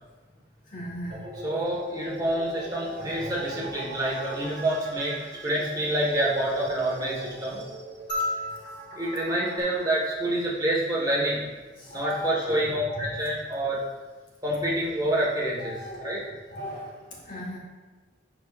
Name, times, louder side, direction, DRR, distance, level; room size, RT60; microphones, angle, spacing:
voice 1, 0.6-1.5 3.2-3.3 8.5-8.7 11.8-13.0 15.6-17.6, left 1 dB, 45° left, -3 dB, 1.7 m, -37 dB
sound 1, 1.1-9.6, right 2 dB, 45° right, 1.5 m, -41 dB
voice 2, 1.4-7.6 8.9-11.4 11.9-13.8 14.4-15.7 16.0-16.2, right 1 dB, 20° right, -5 dB, 1.6 m, -27 dB
sound 2, 8.1-10.7 12.3-12.4, left 1 dB, 25° left, 1.5 m, -35 dB
11.0 x 4.8 x 2.5 m, 1.2 s
head